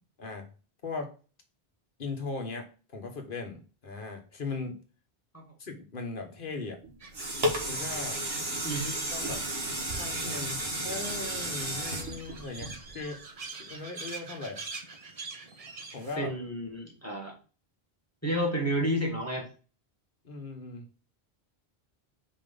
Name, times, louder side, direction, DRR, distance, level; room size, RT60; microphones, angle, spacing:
voice 1, 2.0-4.8 5.6-6.8 7.7-8.2 9.1-9.4 9.9-13.2 13.5-14.6 15.9-16.3 20.2-20.9, left 3 dB, 55° left, 3 dB, 1.4 m, -38 dB
sound 1, 6.8-13.2 13.7-13.8, right 1 dB, 70° right, 1.6 m, -33 dB
sound 2, 7.0-16.2, right 4 dB, 40° right, 0.8 m, -45 dB
voice 2, 8.6-9.0 16.2-17.3 18.2-19.5, equal, 15° left, 0 dB, 1.7 m, -30 dB
5.0 x 3.7 x 5.2 m, 0.35 s
omnidirectional pair, 1.1 m